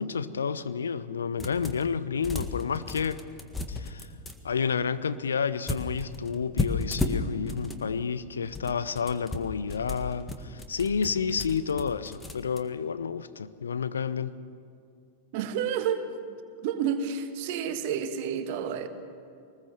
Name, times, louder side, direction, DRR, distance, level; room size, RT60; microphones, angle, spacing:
voice 1, 0.0-3.2 3.7-4.1 4.4-14.3, left 6 dB, 70° left, 0.7 m, -30 dB
sound 1, 1.4-1.9 2.2-4.4 5.7-7.8 8.4-12.6, left 2 dB, 10° left, 1.8 m, -34 dB
voice 2, 15.3-16.1 16.6-18.9, right 7 dB, 50° right, 1.6 m, -30 dB
23.5 x 20.0 x 7.0 m
figure-of-eight pair, 90°, 0 cm